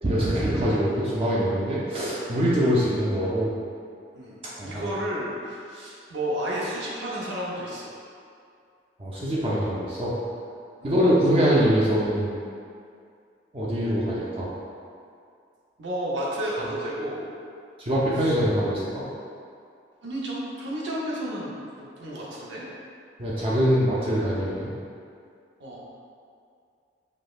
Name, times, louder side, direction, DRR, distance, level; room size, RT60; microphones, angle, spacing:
voice 1, 0.0-3.5 4.6-4.9 9.0-10.2 10.8-12.3 13.5-14.5 17.8-19.1 23.2-24.7, equal, 30° right, -7 dB, 0.4 m, -23 dB
voice 2, 4.1-7.9 10.8-10.9 15.8-17.3 18.2-18.3 20.0-22.7 25.6-25.8, right 1 dB, 85° right, -6 dB, 0.7 m, -32 dB
5.1 x 2.1 x 2.4 m, 2.3 s
head